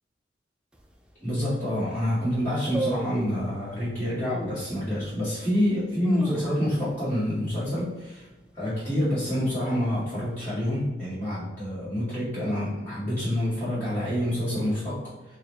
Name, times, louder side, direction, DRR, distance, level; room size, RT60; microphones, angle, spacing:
sound 1, 0.7-0.8 1.4-1.5 1.7-2.1 2.7-3.5 4.2-4.6 5.2-5.3 5.8-6.9 7.2-7.3 7.6-8.0 8.4-8.8 9.4-10.2 10.4-10.5, right 2 dB, 5° right, 0.3 m, -34 dB
voice 1, 1.2-8.3 8.5-15.4, equal, 10° left, -13 dB, 1.2 m, -27 dB
4.7 x 2.0 x 3.0 m, 1.1 s
head